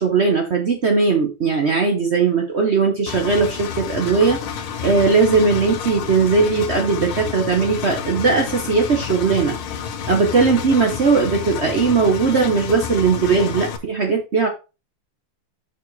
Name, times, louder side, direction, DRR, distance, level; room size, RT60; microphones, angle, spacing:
voice 1, 0.0-4.4 4.8-9.5 10.1-14.5, right 4 dB, 55° right, 4 dB, 0.7 m, -18 dB
Engine, 3.1-13.8, left 7 dB, 75° left, 1.7 m, -29 dB
6.3 x 4.7 x 4.0 m, 0.30 s
omnidirectional pair, 2.4 m